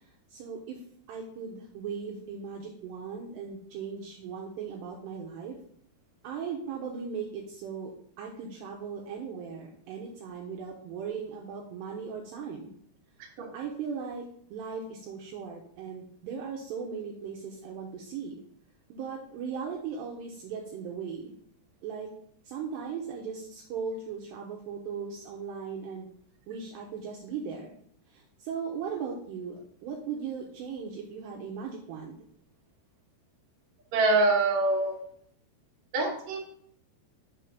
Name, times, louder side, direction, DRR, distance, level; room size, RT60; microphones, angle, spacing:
voice 1, 0.3-0.8 1.1-5.6 6.2-12.7 13.2-18.4 18.9-21.3 21.8-22.1 22.4-26.1 26.5-27.7 28.1-32.2, right 6 dB, 80° right, -1 dB, 2.5 m, -38 dB
voice 2, 33.9-35.0 35.9-36.4, right 2 dB, 60° right, -2 dB, 1.8 m, -24 dB
6.8 x 3.7 x 5.7 m, 0.63 s
omnidirectional pair, 5.6 m